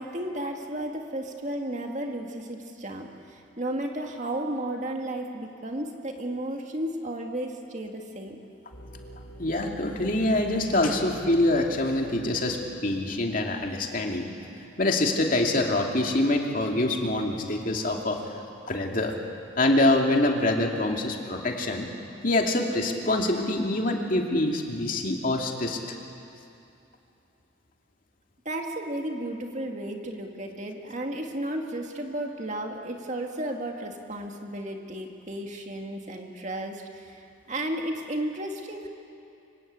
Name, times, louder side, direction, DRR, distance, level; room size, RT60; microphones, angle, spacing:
voice 1, 0.0-8.4 28.5-38.9, right 1 dB, 40° right, 2 dB, 2.2 m, -33 dB
sound 1, 8.7-18.6 19.1-19.2 19.9-20.3, right 1 dB, 60° left, 4.3 m, -48 dB
voice 2, 9.4-14.3 14.8-18.2 18.7-19.1 19.6-21.9 22.2-25.8, left 2 dB, 45° left, 1 dB, 2.6 m, -25 dB
25.0 x 24.0 x 8.8 m, 2.7 s
head